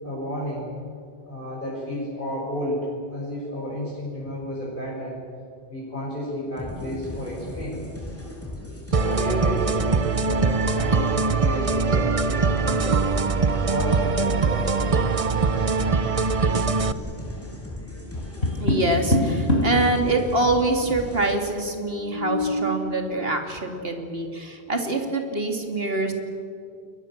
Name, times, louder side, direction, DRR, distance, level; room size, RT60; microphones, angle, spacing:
voice 1, 0.0-0.7 1.3-5.2 5.7-7.8 8.9-13.2 13.6-14.9, equal, 50° left, -5 dB, 6.6 m, -31 dB
sound 1, 6.6-21.3, left 1 dB, 10° left, 6.5 m, -37 dB
sound 2, 8.9-16.9, right 4 dB, 35° right, 0.8 m, -22 dB
Tap, 18.1-19.8 21.8-22.6, left 1 dB, 75° left, 4.2 m, -24 dB
voice 2, 18.6-26.1, right 2 dB, 60° right, 4 dB, 3.1 m, -25 dB
29.5 x 21.5 x 7.5 m, 2.4 s
omnidirectional pair, 1.1 m